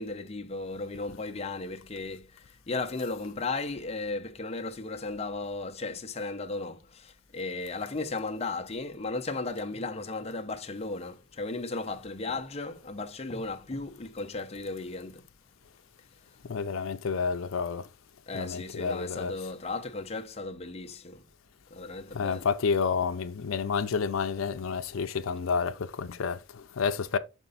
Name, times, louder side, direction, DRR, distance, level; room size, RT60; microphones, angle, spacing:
voice 1, 0.0-15.3 18.3-21.3 21.7-22.5, left 3 dB, 30° left, 0.7 m, -35 dB
voice 2, 16.4-17.9 18.3-19.4 22.1-27.2, left 5 dB, 85° left, 0.5 m, -30 dB
6.6 x 4.5 x 3.9 m
head